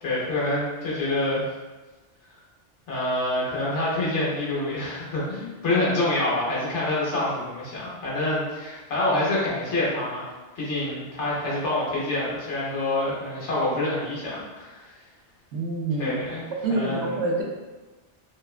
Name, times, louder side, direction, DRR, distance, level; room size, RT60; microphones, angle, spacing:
voice 1, 0.0-1.4 2.9-14.9 16.0-16.4 16.7-17.1, left 2 dB, 85° left, -6 dB, 1.2 m, -27 dB
voice 2, 15.5-16.1 16.6-17.4, right 2 dB, 80° right, -1 dB, 0.9 m, -26 dB
2.8 x 2.1 x 2.3 m, 1.2 s
omnidirectional pair, 1.2 m